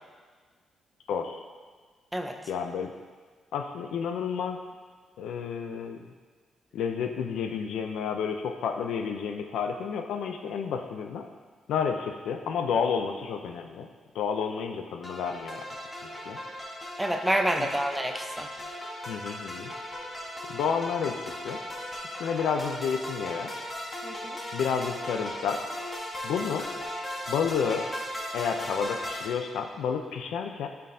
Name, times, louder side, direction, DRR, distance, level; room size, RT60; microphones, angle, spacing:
voice 1, 1.1-1.4 2.5-2.9 3.5-4.6 5.2-6.0 6.7-11.3 11.7-13.9 14.1-15.6 16.3-16.4 19.1-19.7 20.5-21.6 22.0-23.5 24.5-25.6 26.2-26.7 27.3-27.9 28.3-30.7, left 6 dB, 85° left, 4 dB, 0.5 m, -30 dB
sound 1, 15.0-29.3, left 1 dB, 15° left, 1.3 m, -37 dB
voice 2, 17.0-18.5 24.0-24.4, right 1 dB, 5° right, 4 dB, 0.6 m, -28 dB
12.5 x 4.5 x 2.7 m, 1.5 s
cardioid pair, 130°, 0 cm